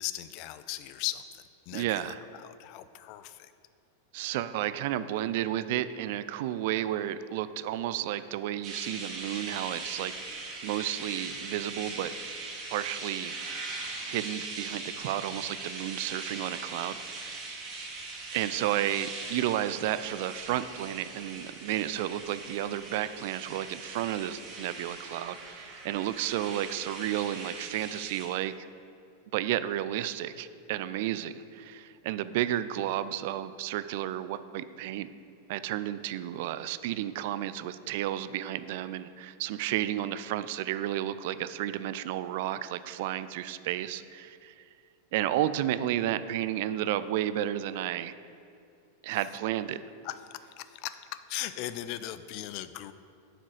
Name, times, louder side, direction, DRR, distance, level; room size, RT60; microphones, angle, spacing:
voice 1, 0.0-3.5 49.1-49.3 50.0-52.9, left 14 dB, 45° left, 13 dB, 0.4 m, -38 dB
voice 2, 1.7-2.2 4.1-10.1 10.6-12.1 12.7-13.4 14.1-17.3 18.3-28.5 29.3-35.1 35.5-44.6 45.1-48.1 49.0-49.8, right 12 dB, 50° right, 14 dB, 0.3 m, -32 dB
sound 1, 8.6-28.3, right 3 dB, 35° right, 2.0 m, -40 dB
7.9 x 6.1 x 6.3 m, 2.5 s
figure-of-eight pair, 90°, 0 cm